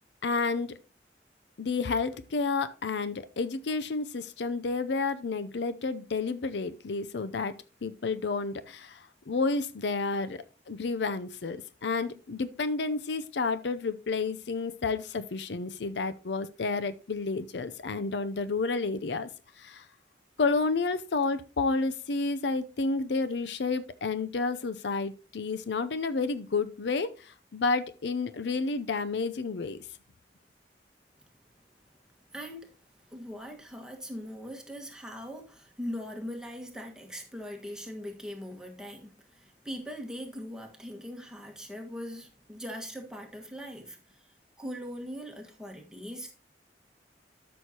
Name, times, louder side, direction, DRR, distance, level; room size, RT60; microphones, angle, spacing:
voice 1, 0.2-0.8 1.6-7.6 7.8-19.3 19.6-19.9 20.4-29.8, left 4 dB, 75° left, 0.6 m, -30 dB
voice 2, 32.3-32.7 33.1-44.0 44.6-46.3, equal, 5° right, 1.5 m, -40 dB
12.5 x 6.4 x 2.9 m
head